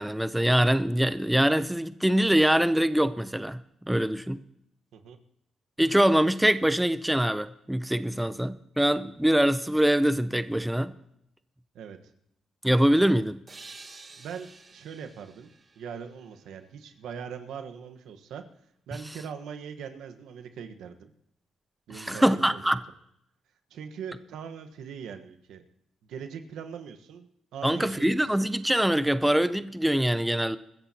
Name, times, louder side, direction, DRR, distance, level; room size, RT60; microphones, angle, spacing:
voice 1, 0.0-3.6 3.9-4.4 5.8-10.9 12.6-13.4 21.9-22.8 27.6-30.6, right 1 dB, 5° right, 13 dB, 0.6 m, -24 dB
sound 1, 13.5-17.0, right 3 dB, 35° right, 2.2 m, -50 dB
voice 2, 14.2-15.5 15.8-18.4 18.9-21.1 21.9-22.8 23.7-25.6 26.0-28.1, right 7 dB, 80° right, 7 dB, 1.3 m, -41 dB
23.5 x 14.5 x 2.9 m, 0.77 s
cardioid pair, 90°, 0 cm